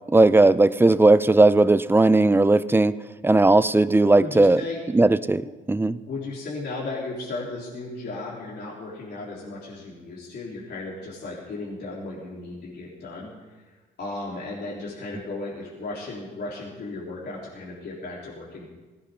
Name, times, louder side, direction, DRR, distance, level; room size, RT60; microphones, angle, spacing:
voice 1, 0.1-3.0 3.2-4.6 4.9-6.0, right 2 dB, 10° right, 15 dB, 0.5 m, -17 dB
voice 2, 4.2-4.8 6.1-13.6 14.0-18.7, left 2 dB, 55° left, -6 dB, 3.8 m, -35 dB
18.0 x 17.5 x 3.8 m, 1.3 s
cardioid pair, 90°, 20 cm